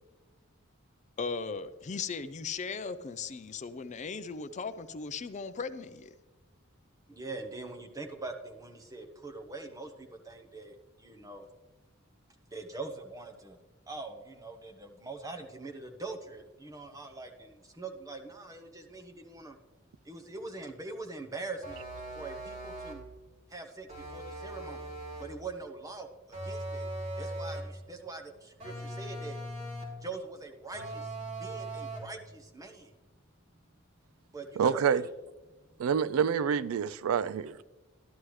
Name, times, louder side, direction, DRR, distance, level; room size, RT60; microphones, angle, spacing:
voice 1, 1.2-6.1, left 5 dB, 35° left, 0.4 m, -37 dB
voice 2, 7.1-11.5 12.5-13.6 13.9-19.6 20.0-21.8 22.1-23.0 23.5-24.9 25.2-26.9 27.2-29.4 30.0-31.1 31.4-32.9 34.3-35.0, right 3 dB, 15° right, 1.0 m, -43 dB
sound 1, 21.6-23.1 23.9-25.4 26.3-27.8 28.6-30.0 30.7-32.2, right 1 dB, 35° right, 3.2 m, -40 dB
voice 3, 34.6-35.0 35.8-37.5, right 7 dB, 90° right, 0.4 m, -27 dB
13.0 x 11.0 x 3.2 m
head